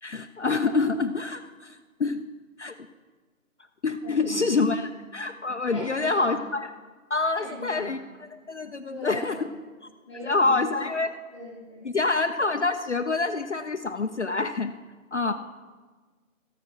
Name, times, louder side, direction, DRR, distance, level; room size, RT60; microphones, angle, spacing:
voice 1, 0.0-2.2 2.6-2.8 3.8-6.7 7.1-9.4 10.2-11.1 11.8-14.7 15.1-15.3, left 3 dB, 55° left, 7 dB, 0.5 m, -26 dB
voice 2, 4.0-4.9 5.7-6.4 7.4-8.0 8.9-9.4 10.0-10.9 11.3-11.9, left 2 dB, 5° right, -6 dB, 1.4 m, -39 dB
13.5 x 8.5 x 4.7 m, 1.4 s
figure-of-eight pair, 175°, 42 cm